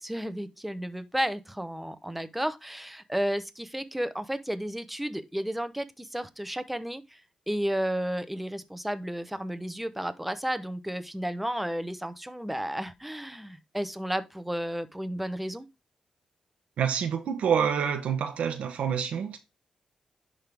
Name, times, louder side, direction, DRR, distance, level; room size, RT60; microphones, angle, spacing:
voice 1, 0.0-7.2 7.5-15.7, equal, 5° right, 0.9 m, -32 dB
voice 2, 16.8-19.4, right 7 dB, 85° right, 1.0 m, -27 dB
10.5 x 3.8 x 3.5 m
cardioid pair, 80°, 2 cm